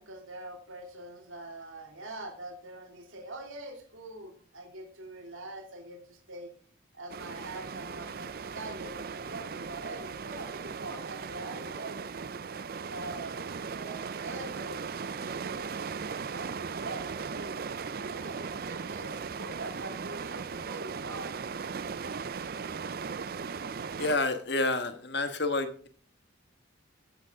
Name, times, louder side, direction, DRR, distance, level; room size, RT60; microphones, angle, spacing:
voice 1, 0.0-6.5 6.9-12.1 12.7-21.3, right 2 dB, 90° right, 1 dB, 2.8 m, -44 dB
sound 1, 7.1-24.2, right 5 dB, 50° right, 0.4 m, -38 dB
voice 2, 24.0-25.9, left 2 dB, 55° left, 8 dB, 1.5 m, -29 dB
15.0 x 7.8 x 3.7 m, 0.43 s
head